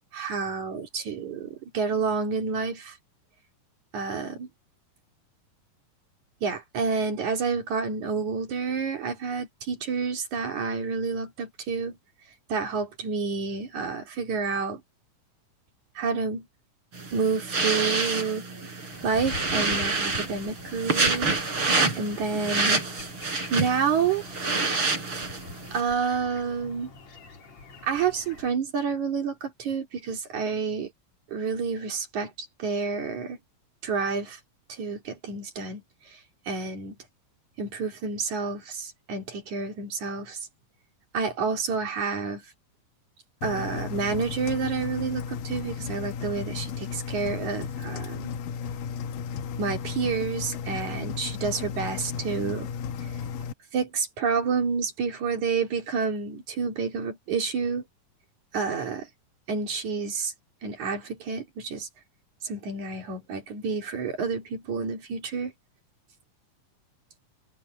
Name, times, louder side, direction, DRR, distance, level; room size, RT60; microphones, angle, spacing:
voice 1, 0.1-3.0 3.9-4.5 6.4-12.0 12.5-14.8 16.0-16.5 17.1-18.5 19.0-21.3 22.0-22.8 23.5-24.2 25.7-26.9 27.8-30.9 31.3-33.4 33.8-34.4 34.7-36.2 36.5-37.0 37.6-40.4 41.1-42.4 43.4-48.3 49.6-52.7 53.0-53.1 53.7-57.8 58.5-59.1 59.5-60.3 60.6-61.9 62.4-65.5, right 5 dB, 60° right, 3.8 m, -29 dB
sound 1, 16.9-25.8, right 3 dB, 40° right, 5.4 m, -28 dB
sound 2, 18.9-28.5, left 3 dB, 55° left, 4.8 m, -44 dB
Engine, 43.4-53.5, left 7 dB, 85° left, 2.7 m, -34 dB
omnidirectional pair, 3.8 m